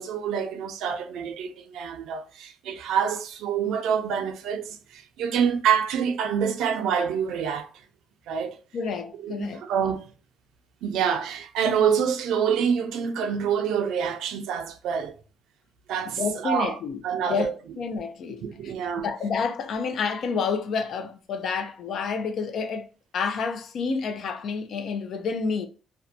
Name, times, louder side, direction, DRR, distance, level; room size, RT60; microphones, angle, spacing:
voice 1, 0.0-7.7 8.3-8.6 9.2-10.1 10.8-15.2 15.9-16.8 17.0-17.6 18.4-19.1, right 7 dB, 85° right, 0.4 m, -26 dB
voice 2, 8.7-9.6 16.2-17.0 17.3-17.5 17.8-18.7 19.0-22.9 23.1-25.7, left 5 dB, 65° left, 0.5 m, -29 dB
2.6 x 2.1 x 2.5 m
cardioid pair, 90°, 0 cm